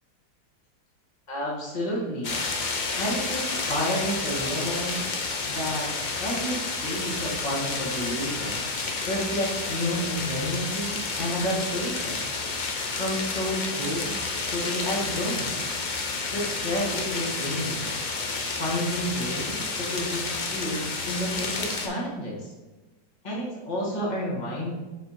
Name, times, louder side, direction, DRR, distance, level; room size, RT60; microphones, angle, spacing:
voice 1, 1.3-2.3 3.0-5.0 5.5-5.9 6.2-8.6 9.0-12.2 13.0-14.2 14.5-15.7 16.3-17.9 18.6-22.5 23.2-24.7, equal, 25° left, -4 dB, 1.7 m, -30 dB
sound 1, 2.2-21.9, left 4 dB, 50° left, 0.5 m, -30 dB
6.8 x 4.4 x 4.3 m, 1.1 s
omnidirectional pair, 1.8 m